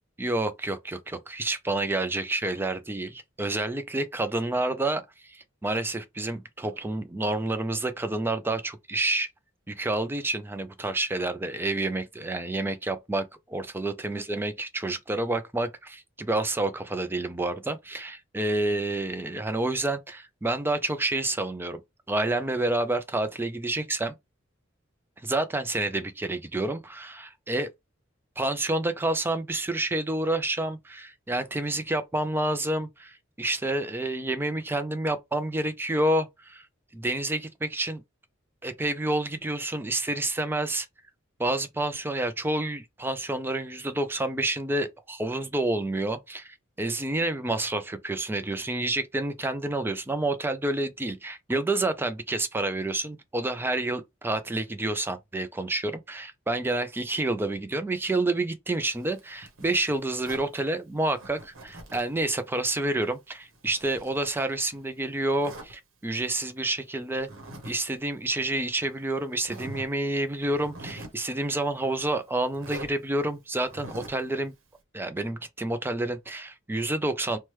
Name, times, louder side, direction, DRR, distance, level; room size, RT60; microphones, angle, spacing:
voice 1, 0.2-9.3 9.7-21.8 22.1-24.1 25.2-27.7 28.4-36.7 36.9-38.0 38.6-40.9 41.4-67.3 67.6-74.5 74.9-77.4, right 2 dB, 10° right, 0.3 m, -29 dB
Zipper (clothing), 58.8-60.5 61.2-62.2 62.6-64.8 65.4-65.7 67.2-67.8 68.0-68.2 68.9-69.0 69.4-69.9 70.4-71.2 72.5-72.9 73.6-74.3, right 1 dB, 85° right, 0.9 m, -44 dB
3.1 x 2.2 x 3.0 m
head